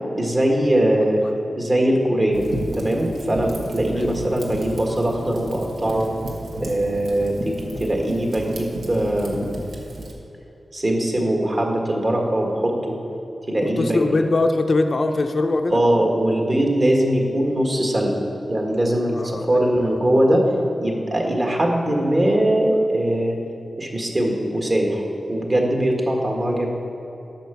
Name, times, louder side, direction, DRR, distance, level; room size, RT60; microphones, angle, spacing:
voice 1, 0.1-1.2 1.6-2.4 2.8-6.1 6.6-9.5 10.7-13.0 13.5-14.1 15.7-18.1 18.5-20.5 20.8-23.4 23.8-26.7, right 1 dB, 40° right, 0 dB, 1.8 m, -21 dB
Fire, 2.3-10.1, right 1 dB, 85° right, 1.3 m, -33 dB
voice 2, 13.6-15.8 19.1-20.0, left 2 dB, 55° left, 6 dB, 0.5 m, -22 dB
9.2 x 6.0 x 6.9 m, 3.0 s
wide cardioid pair, 70°, 0 cm